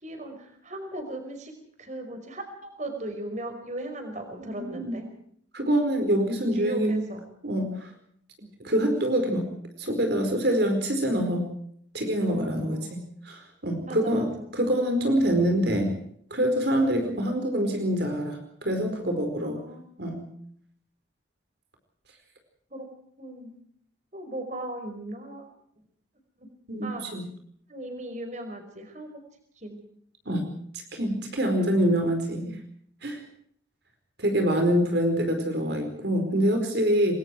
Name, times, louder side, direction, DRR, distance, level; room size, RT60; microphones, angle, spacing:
voice 1, 0.0-1.5 1.8-5.0 6.4-7.2 8.4-8.5 12.6-13.0 13.8-14.3 19.4-19.9 22.7-22.9 23.2-23.5 24.1-25.5 26.4-26.5 26.8-27.1 27.7-29.1 29.6-29.8, right 1 dB, 40° right, 6 dB, 5.1 m, -37 dB
voice 2, 4.4-5.0 5.5-7.0 7.4-7.9 8.6-9.5 9.8-11.5 11.9-16.0 16.3-19.6 20.0-20.2 26.7-27.3 30.3-30.4 30.9-32.6 33.0-33.2 34.2-37.1, equal, 60° right, 4 dB, 4.7 m, -25 dB
28.0 x 21.5 x 4.6 m, 0.65 s
head